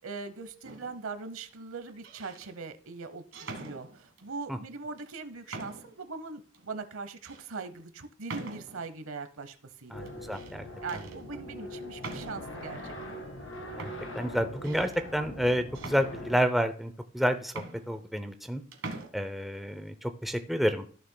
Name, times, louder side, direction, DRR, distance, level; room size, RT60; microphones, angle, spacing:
voice 1, 0.0-10.1 10.8-13.2, right 4 dB, 90° right, 11 dB, 0.9 m, -41 dB
sound 1, 0.6-1.1 1.9-2.5 3.3-4.3 5.0-5.1 5.5-6.0 6.5-6.6 7.3-7.4 8.3-8.9 10.1-10.6 10.9-11.2 12.0-12.6 13.4-13.5 13.8-15.0 15.7-16.6 17.2-17.3 17.5-18.5 18.7-19.1, right 3 dB, 65° right, 1.5 m, -43 dB
sound 2, 9.9-16.4, equal, 75° left, 1.8 m, -42 dB
voice 2, 9.9-10.7 10.9-11.0 13.8-18.6 19.1-20.9, equal, ahead, 8 dB, 0.5 m, -30 dB
14.0 x 6.7 x 2.2 m, 0.43 s
head